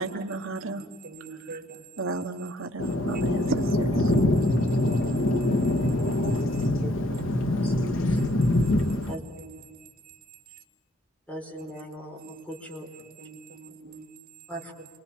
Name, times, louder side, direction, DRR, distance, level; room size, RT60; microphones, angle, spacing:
voice 1, 0.0-0.8 2.0-4.2, right 3 dB, 65° right, 1.1 m, -33 dB
voice 2, 0.6-1.9 3.1-3.3 4.5-6.7 8.1-8.7 9.4-10.6 11.6-11.7 12.2-12.4 12.8-14.2 14.8-14.9, right 3 dB, 45° right, 2.1 m, -45 dB
Thunder, 2.8-9.1, left 1 dB, 70° left, 1.8 m, -24 dB
voice 3, 7.5-8.3 9.1-9.2 11.3-12.9 14.5-14.7, right 1 dB, 5° left, 4.3 m, -40 dB
29.0 x 24.0 x 7.5 m
head